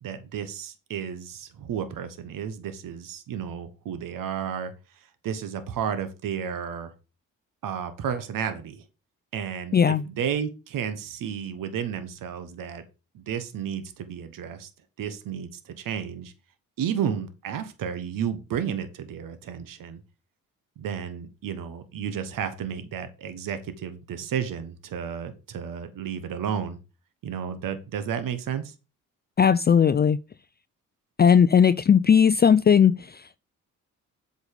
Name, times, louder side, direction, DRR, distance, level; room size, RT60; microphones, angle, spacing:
voice 1, 0.0-4.7 5.2-6.9 7.6-8.8 9.3-12.8 13.1-14.7 15.0-16.3 16.8-20.0 20.8-26.8 27.2-28.7, right 8 dB, 75° right, 1.4 m, -32 dB
voice 2, 9.7-10.0 29.4-30.2 31.2-33.2, left 7 dB, 30° left, 0.5 m, -18 dB
8.0 x 5.4 x 6.7 m
supercardioid pair, 65°, 33 cm